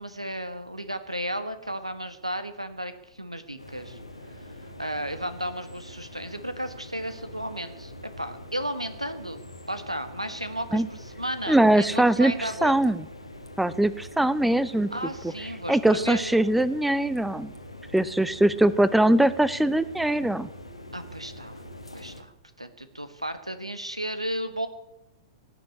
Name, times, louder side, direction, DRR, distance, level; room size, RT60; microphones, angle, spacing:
voice 1, 0.0-7.9 8.2-12.8 14.9-16.4 20.9-21.7 21.9-22.3 22.6-24.7, equal, 90° right, 11 dB, 1.5 m, -34 dB
sound 1, 3.6-22.2, left 1 dB, 90° left, 1.9 m, -44 dB
voice 2, 11.5-13.0 13.6-14.9 15.7-17.5 17.9-20.5, right 1 dB, 5° right, 17 dB, 0.6 m, -22 dB
17.0 x 7.5 x 9.8 m, 0.89 s
figure-of-eight pair, 105°, 3 cm